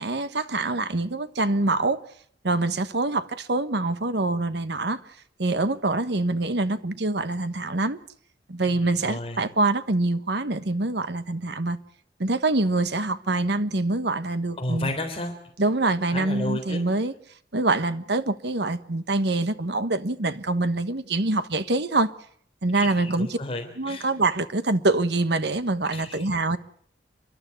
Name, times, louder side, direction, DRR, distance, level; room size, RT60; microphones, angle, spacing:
voice 1, 0.0-2.0 2.4-5.0 5.4-8.0 8.5-11.8 12.2-14.9 15.6-17.1 17.5-22.1 22.6-23.4 23.8-26.6, right 2 dB, 65° right, 1.3 m, -25 dB
voice 2, 9.0-9.4 14.6-15.3 16.1-16.8 22.7-24.1 25.9-26.3, left 1 dB, 30° left, 3.7 m, -32 dB
29.5 x 12.0 x 9.5 m
head